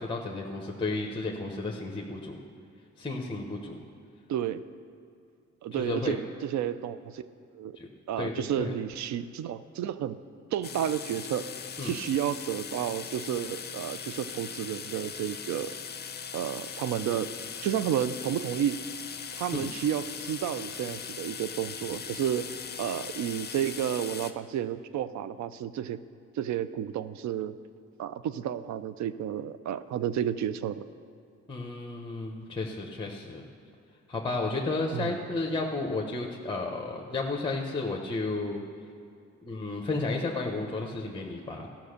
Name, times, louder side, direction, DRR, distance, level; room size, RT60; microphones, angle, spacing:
voice 1, 0.0-2.4 3.0-3.8 5.7-6.2 7.7-7.9 8.2-8.7 11.8-11.9 19.5-19.7 31.5-33.4 34.1-38.6 39.4-41.7, left 3 dB, 15° left, 0 dB, 1.0 m, -32 dB
voice 2, 4.3-4.6 5.6-7.2 7.5-7.8 8.1-10.2 10.5-11.5 11.8-15.7 16.3-17.3 17.6-18.8 19.3-22.5 22.8-26.0 26.4-27.6 28.0-30.8 34.9-35.2, right 10 dB, 70° right, 14 dB, 0.5 m, -31 dB
sound 1, 10.6-24.3, left 7 dB, 35° left, 0.6 m, -40 dB
14.0 x 5.9 x 6.6 m, 2.5 s
cardioid pair, 90°, 30 cm